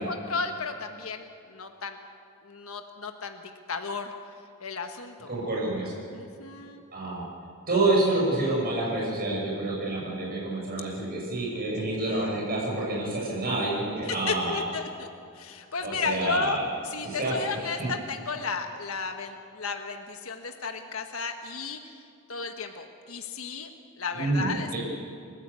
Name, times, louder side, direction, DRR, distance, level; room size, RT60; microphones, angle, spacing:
voice 1, 0.0-2.0 2.4-4.1 4.6-5.4 6.1-6.8 12.0-12.4 14.0-21.9 22.3-23.7 24.0-24.8, left 4 dB, 75° left, 5 dB, 1.4 m, -34 dB
voice 2, 5.3-6.0 6.9-7.3 7.7-14.6 15.8-16.6 17.0-17.3 24.1-24.8, right 2 dB, 45° right, -3 dB, 6.2 m, -28 dB
29.5 x 14.0 x 8.4 m, 2.5 s
head